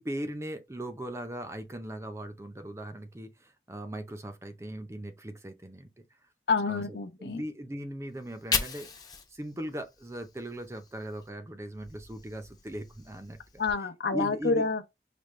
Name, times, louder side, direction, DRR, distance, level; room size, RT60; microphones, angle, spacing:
voice 1, 0.0-6.0 6.7-9.0 9.3-13.4 14.1-14.7, right 1 dB, 15° right, 0.5 m, -39 dB
voice 2, 6.5-7.4 13.6-14.8, left 4 dB, 70° left, 0.7 m, -28 dB
Fire, 8.1-11.3 11.7-13.7, left 5 dB, 20° left, 0.6 m, -38 dB
5.0 x 2.2 x 3.1 m
head